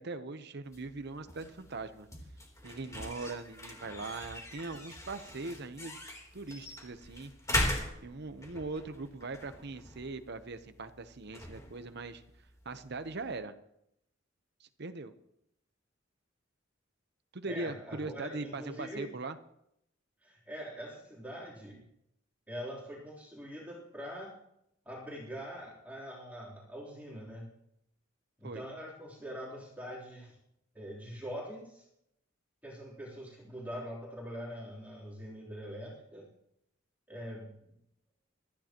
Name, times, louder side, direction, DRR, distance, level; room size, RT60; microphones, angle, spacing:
voice 1, 0.0-2.1 2.6-6.0 6.3-7.3 8.0-12.2 12.6-13.5 14.6-15.1 17.3-19.4 28.4-28.6, right 3 dB, 60° right, 10 dB, 0.9 m, -40 dB
sound 1, 0.6-13.4, left 1 dB, 15° left, 3.3 m, -40 dB
voice 2, 17.5-19.1 20.2-21.8 22.5-24.3 24.8-27.5 28.4-30.4 30.7-31.8 32.6-36.3 37.1-37.5, equal, 10° right, -5 dB, 3.4 m, -43 dB
24.0 x 14.0 x 3.0 m, 0.78 s
head